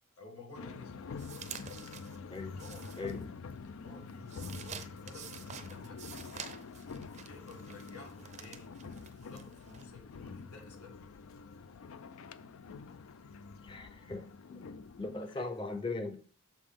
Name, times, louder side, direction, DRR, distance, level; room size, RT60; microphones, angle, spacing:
voice 1, 0.1-1.0 1.5-3.3 3.6-6.0 6.8-8.7 9.2-11.0 15.2-15.6, left 3 dB, 90° left, 1.8 m, -53 dB
sound 1, 0.5-15.2, left 4 dB, 70° left, 0.4 m, -47 dB
sound 2, 1.2-3.6 3.9-9.8, right 7 dB, 35° right, 0.5 m, -49 dB
voice 2, 2.3-2.6 3.0-3.2 13.6-14.6 15.0-16.2, left 3 dB, 20° left, 0.6 m, -39 dB
7.0 x 5.3 x 3.6 m
head